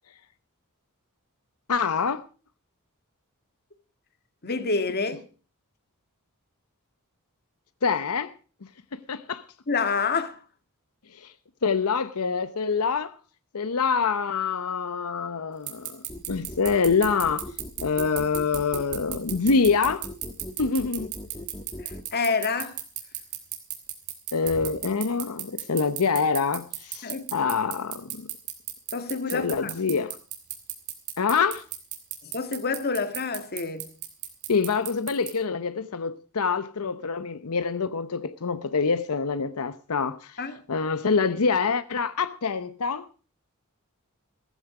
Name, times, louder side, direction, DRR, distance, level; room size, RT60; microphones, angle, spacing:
voice 1, 1.7-2.2 7.8-8.3 8.9-9.4 11.1-11.3 11.6-13.1 13.5-17.5 17.8-20.1 20.6-21.1 24.3-28.3 29.3-30.1 31.2-31.7 34.5-40.4 40.7-43.1, left 5 dB, 85° left, 0.8 m, -26 dB
voice 2, 4.4-5.2 9.7-10.4 21.8-22.8 27.0-27.5 28.9-29.7 32.2-33.9 40.4-40.6, left 4 dB, 45° left, 1.7 m, -28 dB
sound 1, 15.7-35.3, right 15 dB, 90° right, 3.3 m, -33 dB
sound 2, 16.1-22.0, left 1 dB, 20° left, 1.3 m, -39 dB
15.5 x 14.5 x 4.8 m
head